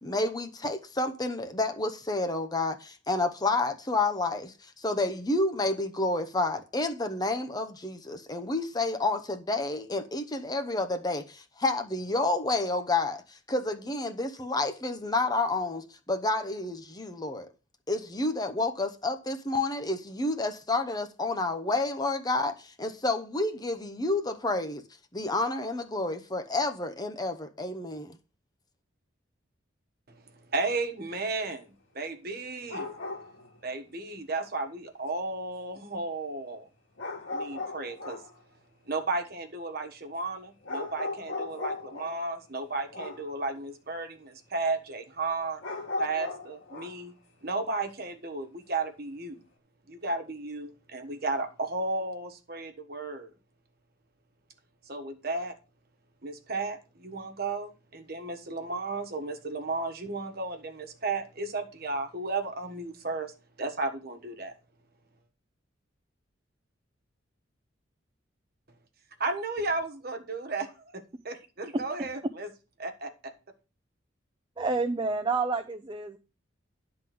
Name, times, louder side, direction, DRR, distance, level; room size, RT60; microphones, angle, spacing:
voice 1, 0.0-17.5 17.9-24.8 25.1-28.2, left 2 dB, 20° left, 0.8 m, -30 dB
voice 2, 30.1-32.9 33.6-36.7 37.3-38.2 38.9-45.6 46.0-47.1 47.4-49.4 49.9-53.3 54.9-55.5 56.2-64.5 69.2-72.5 72.8-73.3, right 3 dB, 50° right, 1.4 m, -34 dB
sound 1, 32.7-33.6 37.0-38.4 40.6-42.2 42.9-43.3 45.6-47.0, left 3 dB, 90° left, 1.8 m, -36 dB
voice 3, 71.7-72.1 74.6-76.2, right 3 dB, 25° right, 0.5 m, -29 dB
11.0 x 3.9 x 7.6 m
head